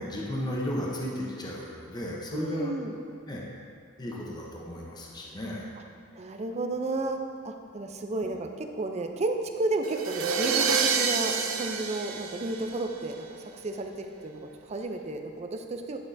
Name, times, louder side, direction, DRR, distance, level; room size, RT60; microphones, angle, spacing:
voice 1, 0.0-2.7 3.3-3.4 4.0-5.6, equal, 20° left, -3 dB, 0.8 m, -34 dB
voice 2, 2.3-3.0 6.1-16.0, right 2 dB, 30° right, 5 dB, 0.5 m, -32 dB
sound 1, 9.8-13.1, right 5 dB, 85° right, 0.5 m, -28 dB
9.7 x 5.9 x 2.6 m, 2.6 s
head